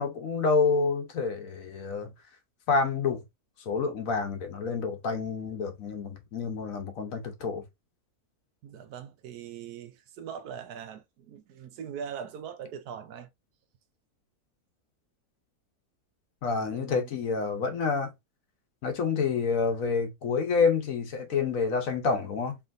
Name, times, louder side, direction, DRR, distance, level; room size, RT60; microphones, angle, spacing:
voice 1, 0.0-2.1 2.7-3.2 3.6-7.6 16.4-18.1 18.8-22.6, left 4 dB, 65° left, 1.2 m, -28 dB
voice 2, 8.6-13.3 16.7-17.1, right 8 dB, 80° right, 1.2 m, -41 dB
4.7 x 3.3 x 2.5 m
omnidirectional pair, 1.6 m